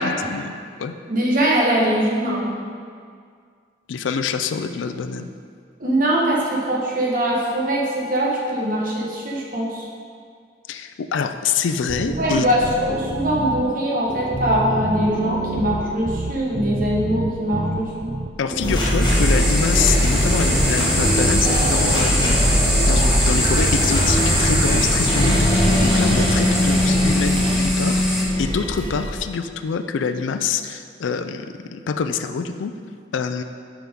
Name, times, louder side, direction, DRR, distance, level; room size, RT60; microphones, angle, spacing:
voice 1, 0.0-0.9 3.9-5.3 10.7-12.5 18.4-28.0 28.4-31.5 31.7-32.7 33.1-33.4, left 6 dB, 80° left, 9 dB, 0.4 m, -25 dB
voice 2, 1.1-2.5 5.8-9.9 12.2-18.1, right 1 dB, 45° right, -3 dB, 1.2 m, -22 dB
sound 1, 11.9-13.6 14.1-27.6, right 2 dB, 30° right, 0.4 m, -28 dB
sound 2, 18.6-29.2, equal, 25° left, 1.2 m, -20 dB
sound 3, 19.0-28.2, equal, 5° right, 1.0 m, -24 dB
7.6 x 5.9 x 3.6 m, 2.1 s
head